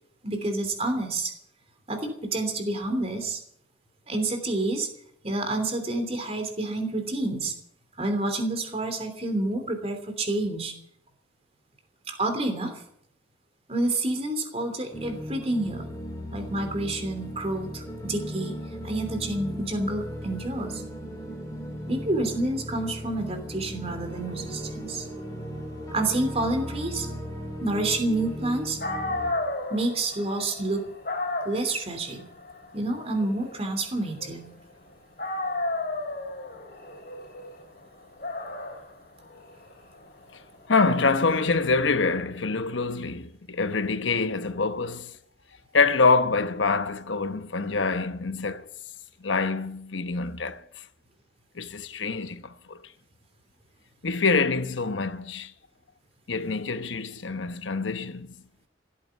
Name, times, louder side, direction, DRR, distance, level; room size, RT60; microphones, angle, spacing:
voice 1, 0.2-1.3 1.9-3.4 4.1-4.9 5.2-7.5 8.0-10.7 12.1-12.8 13.7-15.8 16.3-20.8 21.9-25.1 25.9-27.1 27.6-28.8 29.7-30.9 31.4-32.2 32.7-34.5, right 2 dB, 35° right, 3.1 m, -28 dB
sound 1, 14.9-29.3, equal, 20° left, 3.9 m, -37 dB
Dog, 28.5-28.6 28.8-34.8 35.2-42.0, left 2 dB, 50° left, 3.5 m, -34 dB
voice 2, 40.7-45.1 45.7-48.6 49.2-50.8 51.5-52.8 54.0-55.5 56.3-58.3, left 4 dB, 85° left, 1.0 m, -25 dB
16.0 x 8.7 x 9.3 m
head